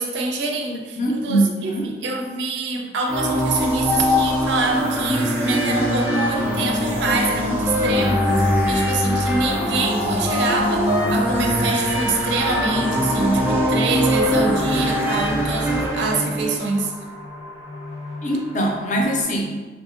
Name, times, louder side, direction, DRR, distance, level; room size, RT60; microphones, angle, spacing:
voice 1, 0.0-16.9, right 3 dB, 80° right, 2 dB, 0.4 m, -25 dB
voice 2, 1.0-1.9 18.2-19.7, right 1 dB, 40° left, -1 dB, 0.4 m, -22 dB
sound 1, 3.1-16.6, left 1 dB, 10° right, 0.5 m, -22 dB
sound 2, 12.7-19.2, left 2 dB, 85° left, 0.7 m, -39 dB
2.8 x 2.6 x 2.5 m, 1.3 s
head